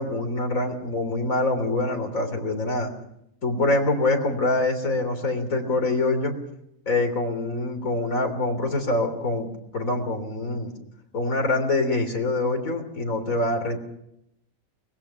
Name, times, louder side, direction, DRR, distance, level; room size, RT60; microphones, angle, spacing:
voice 1, 0.0-2.9 3.4-6.3 6.9-10.7 11.1-13.8, left 2 dB, 70° left, 5 dB, 3.8 m, -25 dB
24.5 x 20.5 x 5.8 m, 0.78 s
omnidirectional pair, 1.5 m